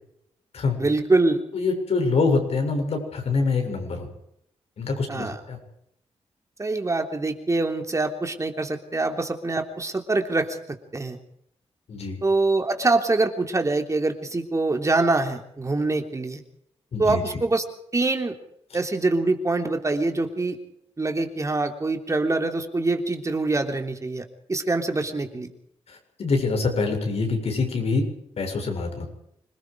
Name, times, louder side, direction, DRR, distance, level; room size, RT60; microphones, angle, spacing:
voice 1, 0.8-1.4 5.1-5.4 6.6-11.2 12.2-16.4 17.0-17.7 17.9-18.3 18.7-20.6 21.0-25.5, right 2 dB, 30° right, 5 dB, 3.4 m, -24 dB
voice 2, 1.5-4.1 4.8-5.6 11.9-12.2 16.9-17.2 25.9-28.0 28.4-29.1, left 4 dB, 70° left, 4 dB, 7.2 m, -25 dB
26.5 x 20.5 x 4.9 m, 0.72 s
cardioid pair, 80°, 11 cm